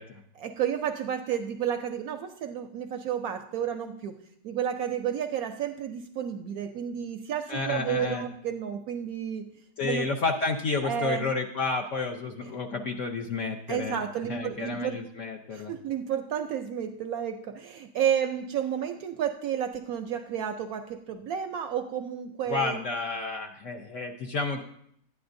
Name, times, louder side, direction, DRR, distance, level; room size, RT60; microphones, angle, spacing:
voice 1, 0.4-4.1 4.4-9.4 9.8-10.1 10.8-11.2 13.7-15.0 15.5-22.8, right 9 dB, 70° right, 6 dB, 0.9 m, -31 dB
voice 2, 7.5-8.2 9.8-15.8 22.5-24.6, left 3 dB, 60° left, 1 dB, 0.8 m, -31 dB
12.0 x 9.4 x 2.6 m, 0.68 s
omnidirectional pair, 1.9 m